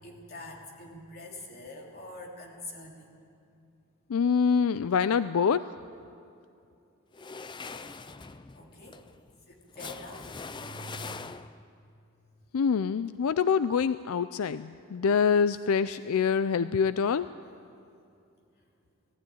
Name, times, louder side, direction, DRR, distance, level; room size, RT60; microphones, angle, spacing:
voice 1, 0.0-3.1 8.5-9.0 9.5-11.4, left 1 dB, 45° left, 0 dB, 3.0 m, -45 dB
voice 2, 4.1-5.7 12.5-17.3, left 6 dB, 80° left, 14 dB, 0.4 m, -25 dB
sound 1, 7.1-11.8, left 4 dB, 20° left, 0.4 m, -42 dB
19.0 x 14.5 x 9.4 m, 2.6 s
head